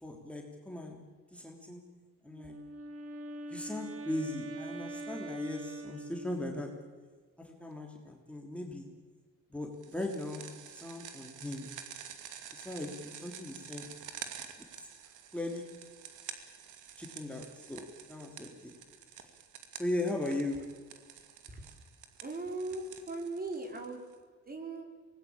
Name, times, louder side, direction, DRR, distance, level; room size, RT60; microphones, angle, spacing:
voice 1, 0.0-1.0 1.3-1.8 2.2-2.5 3.5-6.7 7.4-8.9 9.5-11.7 12.5-13.9 14.8-14.9 15.3-15.6 17.0-18.7 19.2-19.3 19.7-20.6, left 1 dB, 5° left, 1 dB, 3.2 m, -38 dB
Wind instrument woodwind instrument, 2.3-6.8, right 2 dB, 50° right, 2.3 m, -43 dB
sound 1, 9.8-24.1, right 8 dB, 80° right, 2.4 m, -49 dB
voice 2, 22.2-24.0 24.5-24.8, right 2 dB, 30° right, 4 dB, 4.9 m, -38 dB
24.0 x 19.5 x 8.8 m, 1.5 s
cardioid pair, 90°, 30 cm